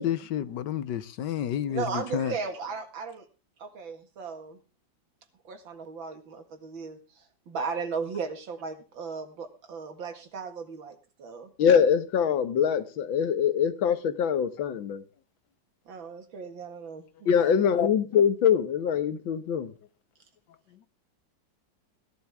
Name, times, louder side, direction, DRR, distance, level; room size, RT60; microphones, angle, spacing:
voice 1, 0.0-2.4 14.6-15.0 20.7-20.8, left 10 dB, 70° left, 1.4 m, -31 dB
voice 2, 1.7-3.3 3.6-4.6 5.4-11.5 15.9-17.9, right 5 dB, 80° right, 2.7 m, -36 dB
voice 3, 11.6-15.0 17.3-19.7, left 7 dB, 90° left, 1.9 m, -23 dB
17.0 x 12.0 x 3.6 m
omnidirectional pair, 2.1 m